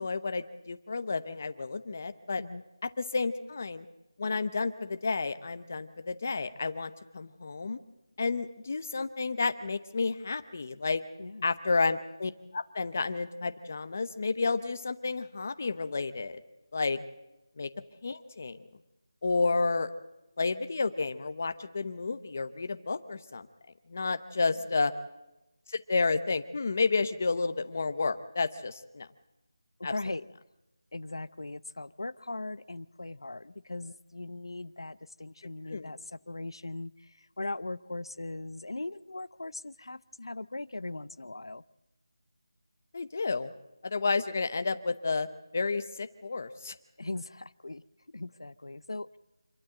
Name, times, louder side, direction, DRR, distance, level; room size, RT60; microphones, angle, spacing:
voice 1, 0.0-2.4 2.8-3.9 4.2-7.8 8.2-11.0 11.4-16.4 16.7-17.0 17.6-17.7 18.0-18.6 19.2-19.9 20.4-23.5 23.9-24.9 25.7-29.1 29.8-29.9 35.7-35.9 42.9-43.5 43.8-45.3 45.5-46.8, left 4 dB, 30° left, 11 dB, 0.8 m, -31 dB
voice 2, 29.8-30.2 30.9-41.6 47.0-47.8 48.1-49.2, left 2 dB, 85° left, 17 dB, 0.7 m, -39 dB
26.5 x 12.5 x 7.8 m, 0.97 s
figure-of-eight pair, 180°, 2 cm